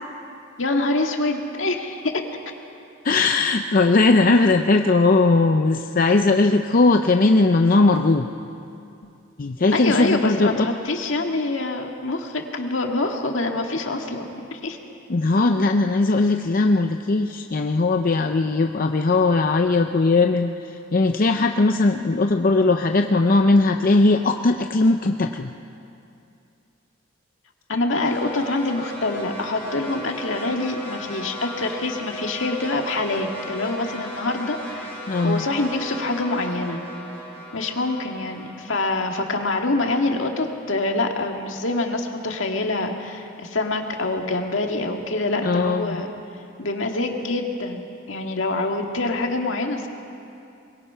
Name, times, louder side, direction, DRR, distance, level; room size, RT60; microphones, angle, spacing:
voice 1, 0.6-2.1 9.7-14.8 27.7-34.9 35.2-36.8 37.5-46.1 46.6-49.9, left 2 dB, 75° left, 3 dB, 2.0 m, -25 dB
voice 2, 3.0-8.3 9.4-10.7 15.1-25.5 35.1-35.5 45.3-46.0, left 3 dB, 45° left, 5 dB, 0.6 m, -19 dB
sound 1, 28.0-40.2, equal, 10° left, 6.2 m, -37 dB
23.5 x 22.0 x 5.6 m, 2.6 s
head